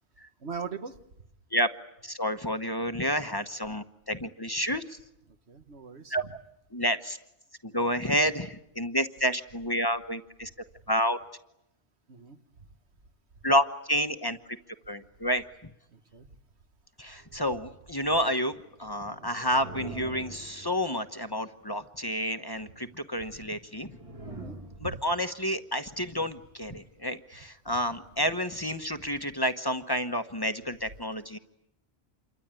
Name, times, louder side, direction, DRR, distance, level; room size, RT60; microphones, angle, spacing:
voice 1, 0.4-1.0 5.5-6.3 12.1-12.4 15.9-16.3 17.3-17.4 24.2-25.0, right 6 dB, 80° right, 8 dB, 1.7 m, -41 dB
voice 2, 2.0-5.0 6.1-6.2 6.7-7.2 7.6-10.5 10.9-11.2 13.4-14.4 14.9-15.4 17.0-23.9 24.8-31.4, equal, 20° left, 8 dB, 1.1 m, -29 dB
sound 1, 18.5-21.4 23.5-25.3, right 2 dB, 30° right, 2.0 m, -44 dB
28.0 x 23.5 x 9.0 m, 0.82 s
omnidirectional pair, 1.1 m